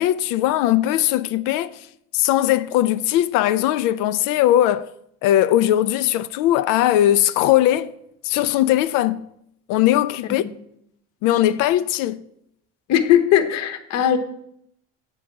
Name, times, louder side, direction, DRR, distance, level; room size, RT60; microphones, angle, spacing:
voice 1, 0.0-1.9 2.1-4.9 5.2-7.9 8.2-9.3 9.7-10.4 11.2-12.2, left 13 dB, 90° left, 0.5 m, -19 dB
voice 2, 12.9-14.2, left 10 dB, 55° left, 0.9 m, -18 dB
8.9 x 4.7 x 7.3 m
cardioid pair, 170°, 32 cm